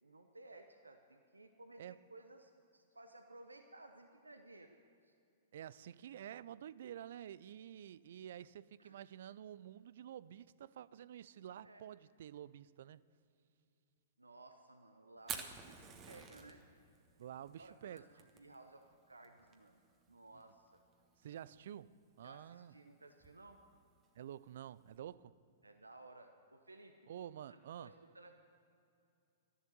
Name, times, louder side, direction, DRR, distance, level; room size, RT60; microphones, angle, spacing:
voice 1, 0.0-4.8 5.0-5.1 8.8-9.0 11.6-11.8 14.2-16.6 17.2-17.3 17.6-18.0 18.3-19.8 20.1-20.8 22.2-23.6 25.6-27.0 27.5-28.4, right 2 dB, 90° right, 0.8 m, -58 dB
voice 2, 5.5-13.0 17.2-18.1 20.3-20.4 21.2-22.7 24.2-25.4 27.1-27.9, right 10 dB, 60° right, 0.3 m, -50 dB
Fire, 15.2-25.0, right 6 dB, 30° right, 1.4 m, -53 dB
13.0 x 11.0 x 6.9 m
figure-of-eight pair, 105°, 0 cm